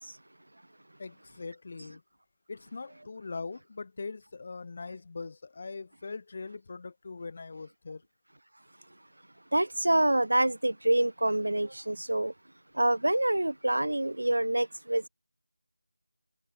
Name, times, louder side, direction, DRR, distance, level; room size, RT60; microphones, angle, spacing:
voice 1, 1.0-2.0 2.5-8.0, left 4 dB, 35° left, 2.9 m, -41 dB
voice 2, 9.5-12.3 12.8-15.1, right 1 dB, 70° right, 1.2 m, -26 dB
figure-of-eight pair, 165°, 0 cm